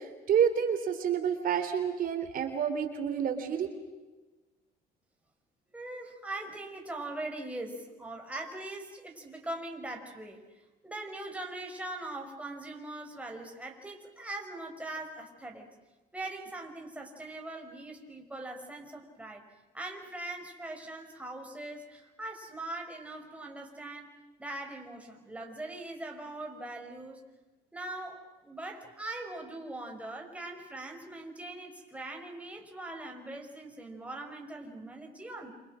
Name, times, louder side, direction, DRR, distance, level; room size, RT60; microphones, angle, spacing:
voice 1, 0.0-3.7, right 8 dB, 60° right, 7 dB, 3.6 m, -29 dB
voice 2, 5.7-10.4 10.8-15.7 16.1-19.4 19.7-24.1 24.4-27.2 27.7-35.5, right 2 dB, 10° right, 1 dB, 5.5 m, -41 dB
28.0 x 28.0 x 6.4 m, 1.2 s
cardioid pair, 110°, 17 cm